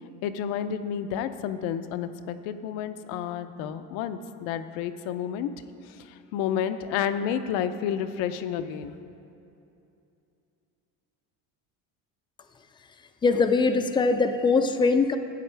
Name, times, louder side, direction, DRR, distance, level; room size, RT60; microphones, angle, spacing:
voice 1, 0.2-5.5 5.9-9.0, left 9 dB, 80° left, 10 dB, 0.6 m, -30 dB
voice 2, 13.2-15.2, left 4 dB, 15° left, 8 dB, 0.4 m, -22 dB
12.5 x 8.4 x 3.3 m, 2.7 s
cardioid pair, 130°, 34 cm